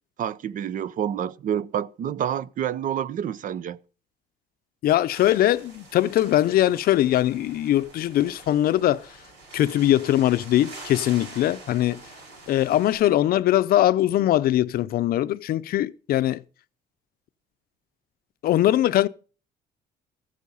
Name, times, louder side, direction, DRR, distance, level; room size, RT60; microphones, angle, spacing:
voice 1, 0.2-3.8, right 9 dB, 50° right, 0.6 m, -28 dB
voice 2, 4.8-9.1 9.5-12.0 12.5-16.4 18.4-19.1, left 13 dB, 60° left, 0.6 m, -21 dB
sound 1, 5.1-13.0, right 3 dB, 85° right, 7.4 m, -45 dB
14.5 x 8.5 x 5.4 m
cardioid pair, 110°, 17 cm